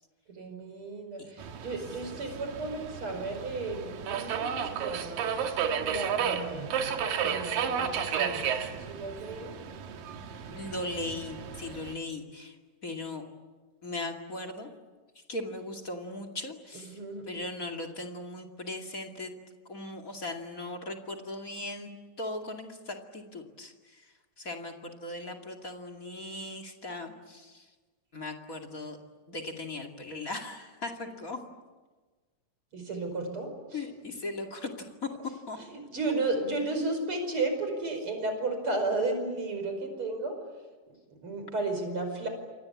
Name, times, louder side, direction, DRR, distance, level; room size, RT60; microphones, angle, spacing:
voice 1, 0.3-5.4 5.8-6.9 7.2-8.5 8.9-9.6 16.9-17.4 32.7-33.8 35.7-40.4 41.1-42.3, right 2 dB, 40° right, 5 dB, 5.9 m, -33 dB
Subway metro underground, 1.4-11.9, right 7 dB, 85° right, 3.4 m, -33 dB
voice 2, 10.5-12.6 12.8-13.2 13.8-14.7 15.1-17.0 17.3-19.3 19.7-21.9 22.2-27.7 28.1-29.0 29.3-31.4 33.7-35.1 35.5-35.6, left 2 dB, 30° left, 3 dB, 2.3 m, -38 dB
28.5 x 24.5 x 8.5 m, 1.3 s
omnidirectional pair, 3.9 m